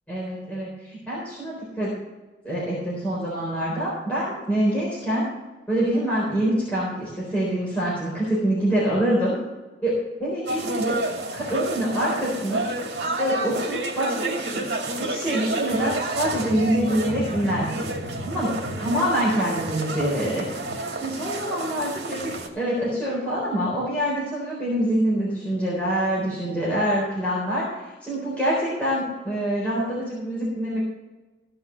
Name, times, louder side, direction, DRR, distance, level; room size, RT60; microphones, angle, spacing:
voice 1, 0.1-1.9 2.4-5.3 5.7-9.3 9.8-9.9 10.2-11.0 11.3-12.6 13.2-17.8 18.2-18.5 18.8-20.4 21.0-22.3 22.5-30.8, right 1 dB, 10° left, -8 dB, 4.0 m, -25 dB
sound 1, 10.5-22.5, right 2 dB, 70° right, 2.2 m, -30 dB
15.5 x 5.8 x 6.9 m, 1.2 s
head